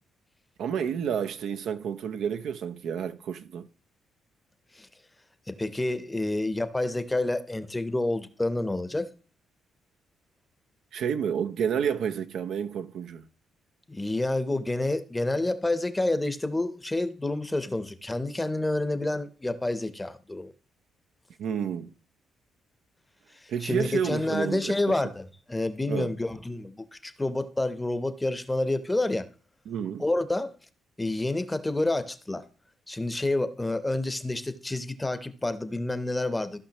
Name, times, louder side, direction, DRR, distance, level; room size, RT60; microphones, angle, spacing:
voice 1, 0.6-3.7 10.9-13.2 21.4-21.9 23.5-24.7 25.9-26.1 29.7-30.0, right 8 dB, 75° right, 0.6 m, -30 dB
voice 2, 5.5-9.1 13.9-20.5 23.4-29.3 30.0-30.5 31.0-32.4 32.9-36.6, left 2 dB, 15° left, 0.8 m, -29 dB
15.0 x 5.5 x 2.9 m
cardioid pair, 90°, 0 cm